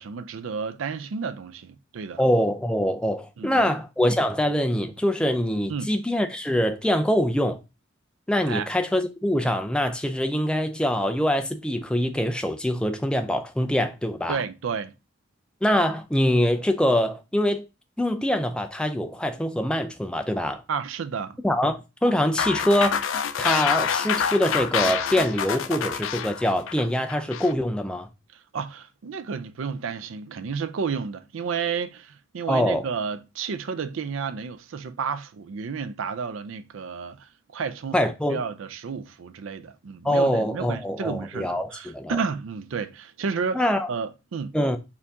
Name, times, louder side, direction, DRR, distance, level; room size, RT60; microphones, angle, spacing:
voice 1, 0.0-2.2 3.4-3.7 5.7-5.9 8.5-8.7 14.3-14.9 20.7-21.4 28.5-37.3 37.5-38.0 38.3-44.5, right 5 dB, 80° right, 0.4 m, -31 dB
voice 2, 2.2-7.6 8.3-14.4 15.6-17.7 18.0-20.6 21.4-23.0 23.4-28.1 32.5-32.8 37.9-38.4 40.0-42.2 43.5-43.9 44.5-44.8, equal, 5° left, 0.4 m, -24 dB
sound 1, 22.4-27.5, left 7 dB, 85° left, 0.4 m, -27 dB
4.4 x 2.7 x 3.4 m
head